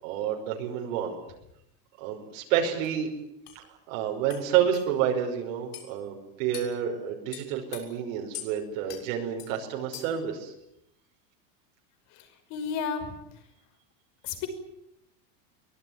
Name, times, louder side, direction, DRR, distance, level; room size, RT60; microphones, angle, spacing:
voice 1, 0.0-1.1 2.0-3.1 3.6-10.5, right 9 dB, 55° right, 1 dB, 5.5 m, -29 dB
sound 1, 2.8-2.9 3.5-3.6 4.3-4.4 4.7-4.9 5.7-5.9 6.5-6.7 7.3-7.8 8.3-8.5 8.9-9.0 9.4-9.5 9.9-10.2, left 11 dB, 70° left, 7.0 m, -41 dB
voice 2, 12.1-13.2 14.2-14.5, left 6 dB, 35° left, 8 dB, 5.6 m, -33 dB
23.5 x 21.0 x 9.6 m, 0.81 s
supercardioid pair, 170°, 47 cm